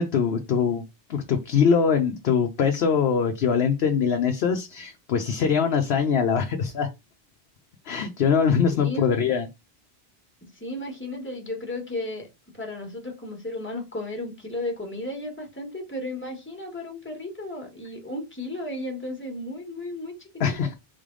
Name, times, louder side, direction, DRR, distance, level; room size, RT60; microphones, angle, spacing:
voice 1, 0.0-6.9 7.8-9.5 20.4-20.7, left 6 dB, 70° left, 0.9 m, -23 dB
voice 2, 8.7-9.1 10.4-12.3 12.5-20.3 20.6-20.7, left 1 dB, 10° left, 1.4 m, -34 dB
4.0 x 3.3 x 3.7 m
omnidirectional pair, 1.1 m